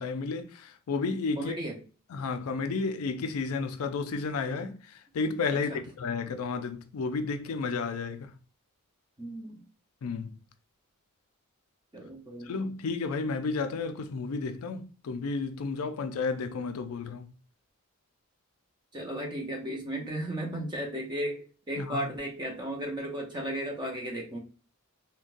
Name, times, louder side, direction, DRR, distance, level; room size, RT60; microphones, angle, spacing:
voice 1, 0.0-1.5 2.1-8.3 10.0-10.4 12.4-17.3 21.8-22.1, left 4 dB, 70° left, 0.4 m, -32 dB
voice 2, 1.4-1.8 5.7-5.8 9.2-9.6 11.9-12.5 18.9-24.4, right 1 dB, 20° right, 0.7 m, -35 dB
3.8 x 2.2 x 2.4 m
head